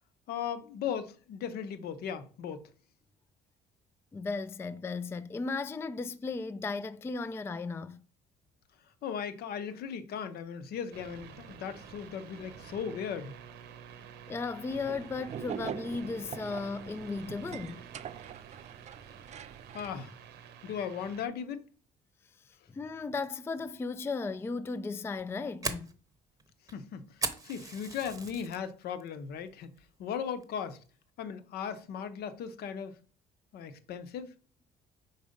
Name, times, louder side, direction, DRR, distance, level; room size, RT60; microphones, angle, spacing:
voice 1, 0.3-2.7 9.0-13.4 19.7-20.1 20.6-21.6 26.7-29.7 30.0-30.8 31.2-33.0 33.5-34.3, left 7 dB, 70° left, 0.8 m, -37 dB
voice 2, 4.1-8.0 14.3-17.8 22.5-25.9, left 4 dB, 15° left, 0.3 m, -36 dB
sound 1, 10.9-21.3, right 8 dB, 80° right, 1.0 m, -50 dB
sound 2, 14.7-20.0, right 8 dB, 45° right, 0.5 m, -43 dB
Fire, 25.0-28.6 29.0-29.4 29.8-29.9 30.4-30.8, right 3 dB, 20° right, 0.8 m, -38 dB
4.9 x 4.0 x 5.1 m
cardioid pair, 110°, 17 cm